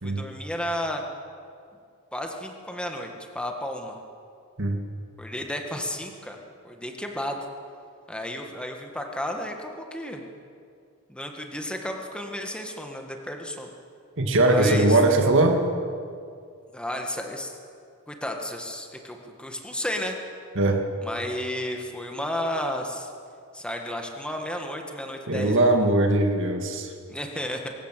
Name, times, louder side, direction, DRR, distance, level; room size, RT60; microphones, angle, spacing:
voice 1, 0.0-1.0 2.1-4.0 5.2-6.4 6.6-7.4 8.1-10.2 11.1-13.7 14.5-15.3 16.7-17.6 18.1-20.2 21.0-23.1 23.5-25.9 27.1-27.7, left 1 dB, 5° left, 2 dB, 1.8 m, -32 dB
voice 2, 14.2-15.6 20.6-20.8 25.3-26.9, right 2 dB, 60° right, 3 dB, 2.0 m, -20 dB
24.5 x 14.5 x 7.7 m, 2.3 s
head